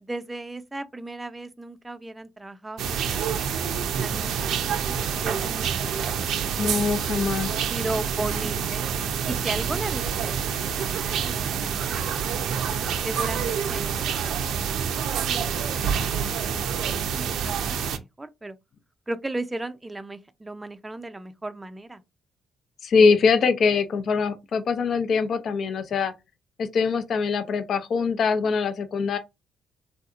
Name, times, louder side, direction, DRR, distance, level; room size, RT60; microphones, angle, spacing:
voice 1, 0.0-3.2 3.8-7.3 7.7-8.9 9.3-11.3 11.6-12.2 13.0-15.0 15.4-18.6 19.1-22.0, right 2 dB, 15° right, 0.4 m, -36 dB
sound 1, 2.8-18.0, right 7 dB, 80° right, 0.5 m, -27 dB
voice 2, 6.6-7.6 22.8-26.1 26.6-29.2, left 5 dB, 60° left, 0.5 m, -23 dB
3.4 x 2.8 x 2.4 m
cardioid pair, 90°, 0 cm